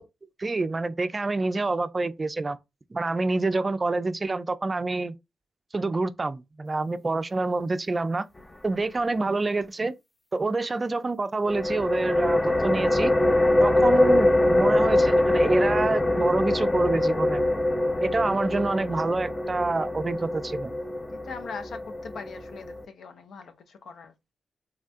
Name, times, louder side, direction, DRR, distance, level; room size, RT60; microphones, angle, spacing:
voice 1, 0.4-2.6 2.9-5.1 5.7-8.3 8.6-9.9 10.3-13.1 13.6-17.4 18.0-20.7, right 3 dB, 35° right, 0.3 m, -27 dB
sound 1, 11.5-22.8, left 1 dB, 20° left, 0.5 m, -23 dB
voice 2, 13.9-14.4 20.1-20.5 21.1-24.1, left 5 dB, 80° left, 0.5 m, -42 dB
3.5 x 2.3 x 2.5 m
cardioid pair, 65°, 0 cm